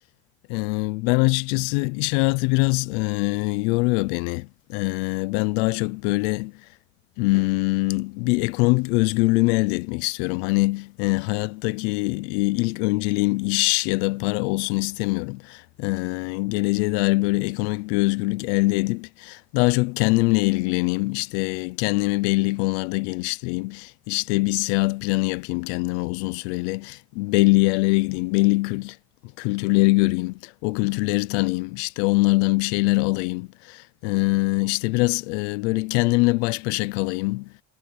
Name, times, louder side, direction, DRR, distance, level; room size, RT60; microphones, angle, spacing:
voice 1, 0.5-6.5 7.2-29.0 29.4-37.5, left 24 dB, 85° left, 0.8 m, -23 dB
supercardioid pair, 75°, 33 cm